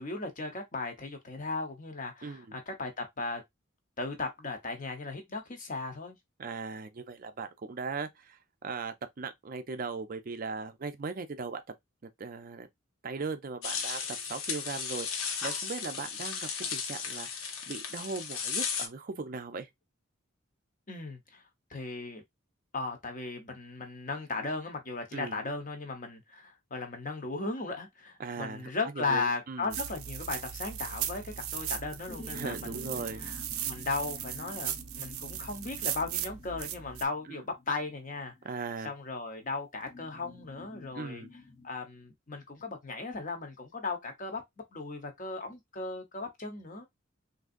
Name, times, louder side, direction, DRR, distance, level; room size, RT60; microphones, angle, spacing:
voice 1, 0.0-3.4 4.0-6.2 20.9-21.4 21.7-22.2 22.7-32.8 33.2-38.3 38.8-41.2 41.6-44.4 44.7-46.9, left 3 dB, 40° left, 0.9 m, -36 dB
voice 2, 2.2-2.5 6.4-11.6 12.0-12.7 13.0-19.7 25.1-25.4 28.2-28.7 29.0-29.8 32.3-33.2 37.3-37.4 38.4-38.9 40.9-41.3, right 4 dB, 40° right, 0.4 m, -38 dB
sound 1, 13.6-18.9, left 6 dB, 75° left, 0.7 m, -35 dB
sound 2, 29.7-37.1, right 10 dB, 90° right, 0.5 m, -37 dB
sound 3, 32.1-38.9 39.9-41.7, left 2 dB, 15° left, 0.6 m, -50 dB
3.6 x 2.7 x 2.5 m
head